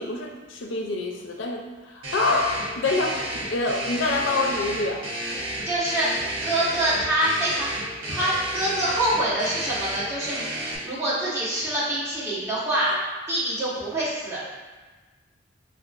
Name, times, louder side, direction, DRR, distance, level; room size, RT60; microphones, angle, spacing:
voice 1, 0.0-5.0 12.8-13.0, left 3 dB, 70° left, 1 dB, 0.5 m, -26 dB
sound 1, 2.0-10.7, right 1 dB, 90° right, 0.9 m, -32 dB
voice 2, 5.6-7.7 8.1-12.9 13.3-14.4, right 1 dB, 15° right, -10 dB, 1.1 m, -25 dB
4.7 x 2.4 x 2.4 m, 1.3 s
head